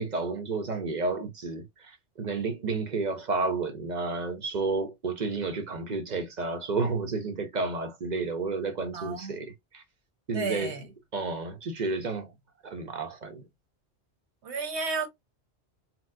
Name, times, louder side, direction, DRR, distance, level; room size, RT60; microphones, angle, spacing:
voice 1, 0.0-9.8 10.3-10.7 11.1-12.3 12.6-13.4, right 3 dB, 50° right, 0.6 m, -31 dB
voice 2, 8.9-9.4 10.3-10.8 14.4-15.1, right 4 dB, 85° right, 1.3 m, -32 dB
4.2 x 2.0 x 2.5 m
omnidirectional pair, 1.1 m